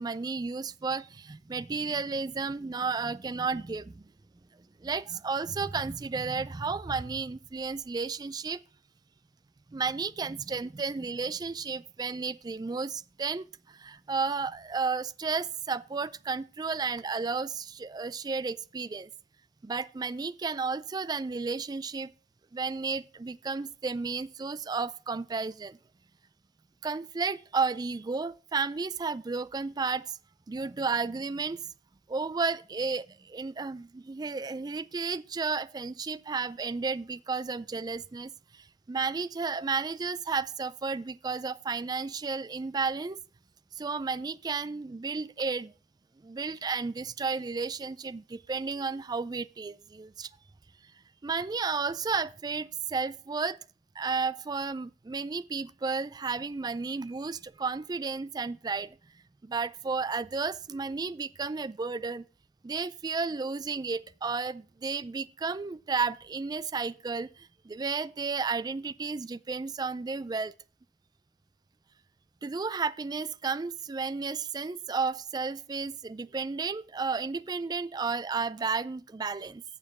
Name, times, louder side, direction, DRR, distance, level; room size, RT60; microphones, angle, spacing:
voice 1, 0.0-4.0 4.8-8.6 9.7-19.1 19.6-22.1 22.5-25.8 26.8-30.2 30.5-31.7 32.1-43.2 43.7-45.7 46.2-50.3 51.2-53.6 54.0-59.0 59.4-62.3 62.6-70.5 72.4-79.6, right 4 dB, 25° right, 0.3 m, -32 dB
8.5 x 6.8 x 5.8 m
head